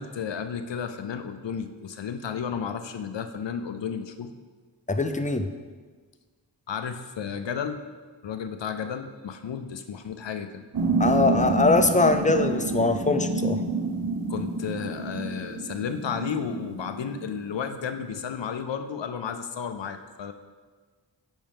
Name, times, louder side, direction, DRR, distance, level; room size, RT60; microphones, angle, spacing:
voice 1, 0.0-4.3 6.7-7.8 8.2-10.6 14.3-20.3, left 7 dB, 75° left, 8 dB, 0.5 m, -33 dB
voice 2, 4.9-5.5 11.0-13.6, left 3 dB, 15° left, 8 dB, 0.5 m, -22 dB
sound 1, 10.7-17.7, right 3 dB, 50° right, 0.7 m, -28 dB
8.8 x 5.4 x 3.5 m, 1.5 s
wide cardioid pair, 45°, 45 cm